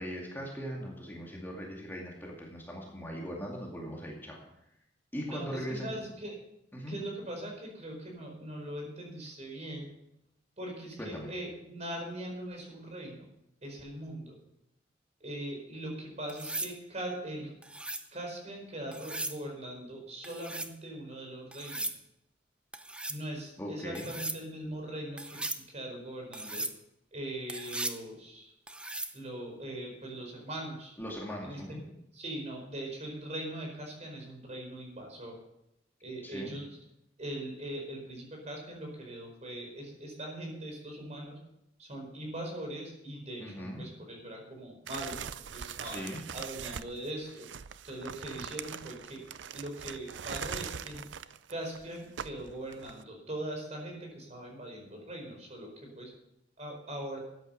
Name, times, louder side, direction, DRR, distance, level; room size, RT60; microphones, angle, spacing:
voice 1, 0.0-4.4 5.1-6.0 6.7-7.0 11.0-11.3 23.6-24.1 31.0-31.8 36.2-36.5 43.4-43.9 45.8-46.2, equal, 10° left, -2 dB, 2.3 m, -39 dB
voice 2, 5.3-6.3 6.9-10.0 10.6-13.3 13.6-14.4 15.2-17.5 18.1-21.9 23.1-26.6 27.1-28.5 29.1-30.9 31.4-31.6 32.1-35.3 36.0-36.7 37.2-41.4 41.8-46.0 46.3-47.5 47.8-49.2 49.5-51.0 51.5-56.1 56.6-57.2, right 1 dB, 40° right, 1 dB, 4.6 m, -41 dB
sound 1, 16.3-16.8 17.6-18.1 18.9-19.4 20.2-20.7 21.5-22.0 22.7-23.2 23.9-24.4 25.2-25.6 26.3-26.8 27.5-28.0 28.7-29.2 31.1-31.4, right 2 dB, 5° right, 0.7 m, -37 dB
sound 2, 44.9-53.0, right 7 dB, 75° right, 0.5 m, -42 dB
13.5 x 9.7 x 6.4 m, 0.82 s
head